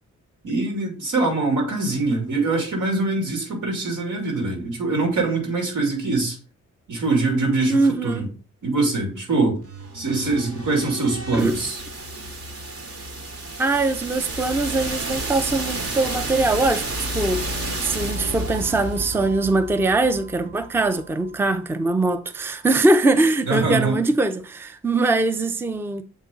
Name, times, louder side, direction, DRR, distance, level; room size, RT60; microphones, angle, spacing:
voice 1, 0.4-6.3 6.9-8.3 8.6-9.6 9.9-11.8 23.4-24.0, right 3 dB, 85° right, 2.8 m, -23 dB
voice 2, 7.7-8.2 11.3-11.6 13.6-17.4 17.8-26.0, right 2 dB, 10° right, 0.4 m, -22 dB
sound 1, 9.6-21.5, right 2 dB, 50° right, 1.3 m, -31 dB
7.2 x 4.0 x 3.8 m
wide cardioid pair, 130°, 30 cm